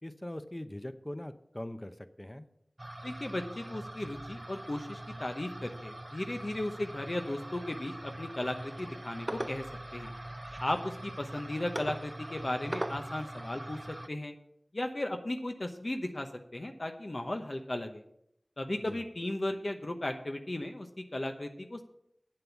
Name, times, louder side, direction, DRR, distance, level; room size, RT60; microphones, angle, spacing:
voice 1, 0.0-2.5 18.9-19.0, left 1 dB, 30° left, 11 dB, 0.7 m, -41 dB
sound 1, 2.8-14.1, right 1 dB, 35° right, 0.4 m, -42 dB
voice 2, 3.0-9.7 9.9-10.1 10.6-14.3 14.7-18.0 18.6-21.8, left 1 dB, 55° left, 5 dB, 0.9 m, -36 dB
8.7 x 7.6 x 7.1 m, 0.75 s
wide cardioid pair, 45°, 0 cm